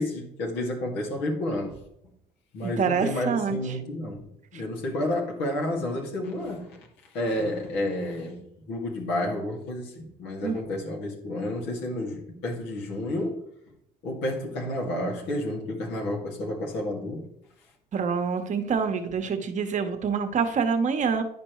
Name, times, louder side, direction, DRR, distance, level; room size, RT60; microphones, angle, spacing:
voice 1, 0.0-1.7 2.5-4.3 4.5-6.9 7.1-8.4 8.7-13.4 14.0-17.2, left 1 dB, 85° left, -1 dB, 2.1 m, -30 dB
voice 2, 2.6-3.6 10.4-10.6 17.9-21.2, right 6 dB, 45° right, 7 dB, 1.0 m, -26 dB
10.0 x 5.2 x 3.1 m, 0.79 s
cardioid pair, 110°, 17 cm